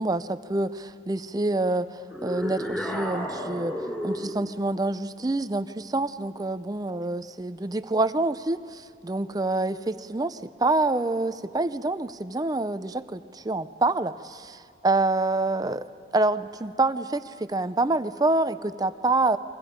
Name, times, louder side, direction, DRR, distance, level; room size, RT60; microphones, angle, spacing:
voice 1, 0.0-3.7 4.0-15.8 16.1-19.4, right 2 dB, 20° right, 13 dB, 0.5 m, -27 dB
sound 1, 2.1-4.4, equal, 10° left, 3.5 m, -32 dB
30.0 x 22.5 x 5.1 m, 2.2 s
head